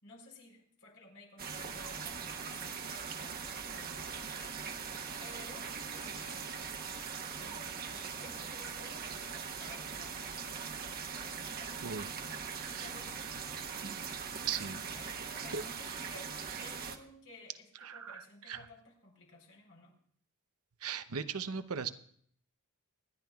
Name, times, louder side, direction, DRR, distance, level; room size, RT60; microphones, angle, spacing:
voice 1, 0.0-4.9 5.2-6.8 7.3-10.4 11.1-11.8 12.7-13.2 14.6-19.9, left 2 dB, 85° left, 0 dB, 4.1 m, -55 dB
sound 1, 1.4-17.0, right 6 dB, 45° right, 1.0 m, -41 dB
voice 2, 11.8-12.2 12.5-12.9 13.9-14.0 14.3-14.8 15.5-16.0 17.8-18.7 20.8-21.9, right 6 dB, 80° right, 10 dB, 0.7 m, -39 dB
25.5 x 11.0 x 2.4 m, 0.62 s
head